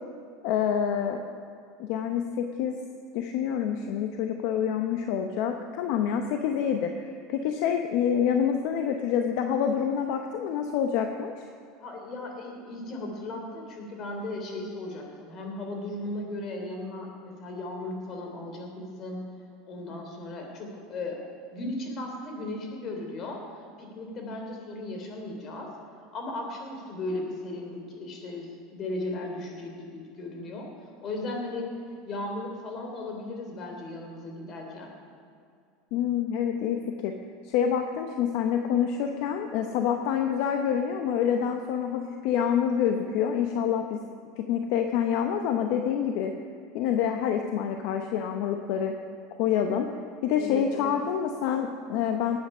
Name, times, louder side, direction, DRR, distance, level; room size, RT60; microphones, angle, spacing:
voice 1, 0.4-1.2 1.8-2.8 3.1-11.3 35.9-37.1 37.4-44.0 44.4-46.3 46.7-49.0 49.4-49.9 50.2-52.4, left 8 dB, 65° left, 5 dB, 0.8 m, -27 dB
voice 2, 11.8-19.2 19.7-21.2 21.5-23.4 23.8-25.7 26.1-30.7 31.0-31.7 32.0-34.9 50.4-50.9, left 2 dB, 40° left, 2 dB, 3.2 m, -36 dB
19.5 x 8.7 x 5.5 m, 2.3 s
supercardioid pair, 130°, 0 cm